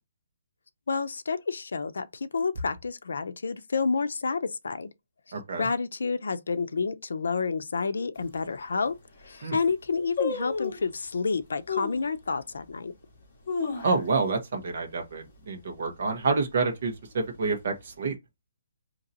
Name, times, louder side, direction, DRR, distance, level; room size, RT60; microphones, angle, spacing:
voice 1, 0.9-4.9 5.6-8.9 9.2-12.9, left 4 dB, 85° left, 0.5 m, -29 dB
voice 2, 5.3-5.7 9.4-9.6 13.8-18.2, right 4 dB, 40° right, 1.2 m, -28 dB
sound 1, 8.1-8.2 8.9-9.0 9.2-9.6 10.2-10.9 11.7-12.1 12.6-12.7 13.2-14.3 14.6-14.7 15.1-15.4 15.8-16.2 16.8-17.6 17.9-18.0, left 5 dB, 30° left, 1.6 m, -32 dB
3.9 x 2.9 x 2.8 m
hypercardioid pair, 180°, 0 cm